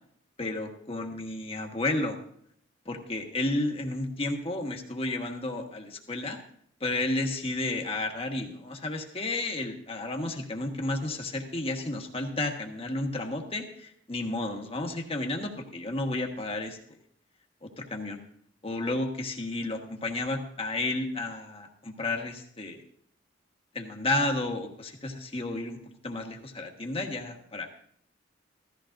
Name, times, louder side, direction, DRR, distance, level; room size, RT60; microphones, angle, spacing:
voice 1, 0.4-2.2 2.8-6.4 6.8-16.8 17.6-18.2 18.6-22.8 23.7-25.8 26.0-27.8, left 2 dB, 30° left, 2 dB, 1.4 m, -32 dB
16.0 x 14.0 x 2.6 m, 0.64 s
head